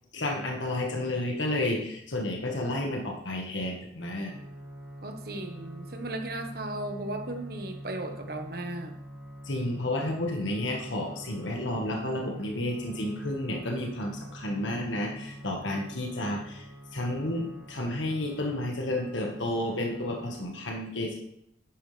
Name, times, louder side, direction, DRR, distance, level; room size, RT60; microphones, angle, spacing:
voice 1, 0.1-4.3 9.4-21.2, left 1 dB, 80° left, 1 dB, 1.6 m, -31 dB
sound 1, 4.3-20.4, right 1 dB, 5° right, 2.4 m, -45 dB
voice 2, 5.0-8.9, right 1 dB, 55° right, 5 dB, 1.3 m, -36 dB
11.0 x 9.4 x 3.4 m, 0.74 s
head